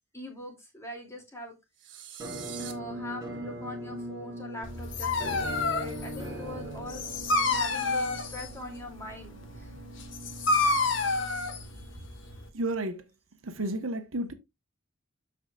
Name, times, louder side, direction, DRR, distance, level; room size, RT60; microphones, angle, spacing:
voice 1, 0.1-1.5 2.6-7.1 7.5-9.7 11.7-12.4, left 1 dB, 15° left, 2.8 m, -42 dB
sound 1, 1.8-2.7, right 11 dB, 60° right, 1.4 m, -43 dB
Musical instrument, 2.2-12.0, right 1 dB, 15° right, 5.2 m, -41 dB
Dog, 4.6-12.5, left 3 dB, 70° left, 1.5 m, -29 dB
voice 2, 12.5-13.0 13.4-14.3, right 1 dB, 90° right, 1.2 m, -31 dB
13.0 x 4.9 x 2.4 m
head